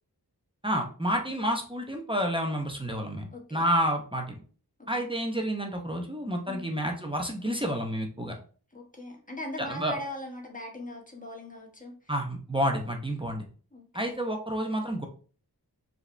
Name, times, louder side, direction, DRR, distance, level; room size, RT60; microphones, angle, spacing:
voice 1, 0.6-4.4 4.9-8.4 9.6-10.0 12.1-13.4 13.9-15.1, equal, 15° right, 2 dB, 0.8 m, -29 dB
voice 2, 3.3-3.7 4.8-4.9 6.5-6.6 8.7-12.1 13.7-14.1, left 1 dB, 20° left, -1 dB, 1.4 m, -40 dB
4.8 x 2.9 x 3.3 m, 0.41 s
wide cardioid pair, 55°, 40 cm